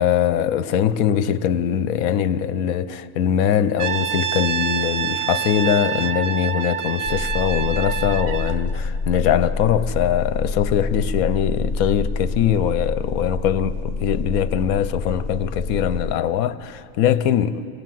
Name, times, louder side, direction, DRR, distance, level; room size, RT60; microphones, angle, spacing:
voice 1, 0.0-17.6, left 9 dB, 75° left, 1.2 m, -22 dB
Brass instrument, 3.8-8.6, right 8 dB, 65° right, 1.1 m, -26 dB
sound 1, 7.0-16.1, left 3 dB, 40° left, 0.8 m, -27 dB
28.0 x 18.0 x 7.6 m
omnidirectional pair, 1.5 m